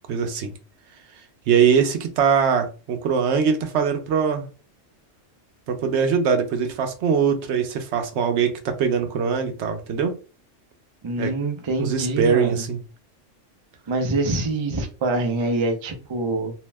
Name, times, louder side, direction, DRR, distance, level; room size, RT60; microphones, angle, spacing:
voice 1, 0.1-0.5 1.5-4.4 5.7-10.1 11.2-11.3 11.8-12.8, right 6 dB, 70° right, 0.8 m, -22 dB
voice 2, 11.0-12.6 13.9-16.5, right 2 dB, 50° right, 0.3 m, -25 dB
2.7 x 2.0 x 3.2 m
omnidirectional pair, 1.3 m